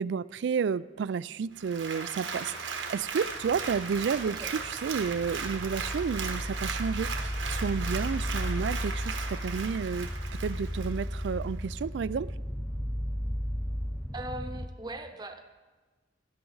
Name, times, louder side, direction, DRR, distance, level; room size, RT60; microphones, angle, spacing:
voice 1, 0.0-9.1 9.4-10.1 10.4-12.3, right 6 dB, 70° right, 19 dB, 0.3 m, -31 dB
Applause, 1.6-11.3 11.8-11.9, right 5 dB, 90° right, 1.3 m, -37 dB
sound 1, 1.9-14.7, equal, ahead, 0.5 m, -35 dB
voice 2, 14.1-15.4, right 1 dB, 20° right, 6 dB, 0.9 m, -40 dB
16.0 x 12.0 x 4.0 m, 1.3 s
head